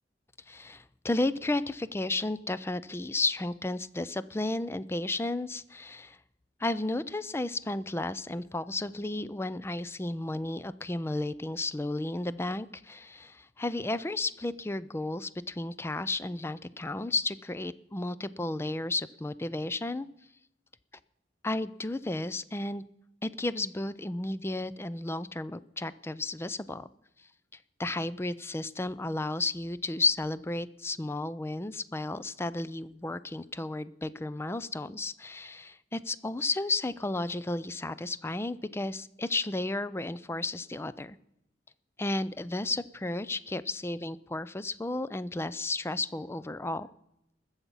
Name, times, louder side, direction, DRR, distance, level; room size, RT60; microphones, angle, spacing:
voice 1, 0.5-6.2 6.6-20.1 21.4-22.8 23.2-26.9 27.8-41.2 42.0-46.9, left 2 dB, 15° left, 16 dB, 0.4 m, -33 dB
20.5 x 7.2 x 5.5 m, 0.82 s
head